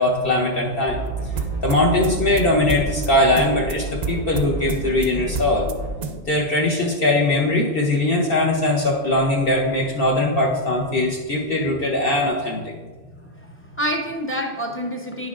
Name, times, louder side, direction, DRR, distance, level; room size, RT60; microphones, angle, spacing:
voice 1, 0.0-1.3 1.6-5.7 6.3-12.7, left 1 dB, 55° left, -2 dB, 0.9 m, -20 dB
sound 1, 0.9-2.5 2.8-5.9, right 2 dB, 70° left, 1.8 m, -31 dB
sound 2, 1.1-6.2, right 5 dB, 55° right, 0.5 m, -31 dB
voice 2, 13.3-15.3, equal, 15° left, 1 dB, 0.6 m, -28 dB
9.5 x 6.0 x 2.4 m, 1.3 s
omnidirectional pair, 1.2 m